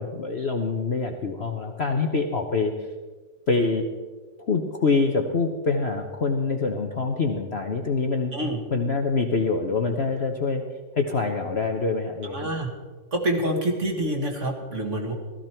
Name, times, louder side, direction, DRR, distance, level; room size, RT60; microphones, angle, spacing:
voice 1, 0.0-2.7 3.5-3.8 4.5-8.3 8.7-10.6 11.0-12.4, left 4 dB, 45° left, 3 dB, 1.0 m, -25 dB
voice 2, 12.3-12.7 13.1-15.1, right 1 dB, 45° right, 2 dB, 2.1 m, -26 dB
16.0 x 14.0 x 4.5 m, 1.4 s
omnidirectional pair, 1.9 m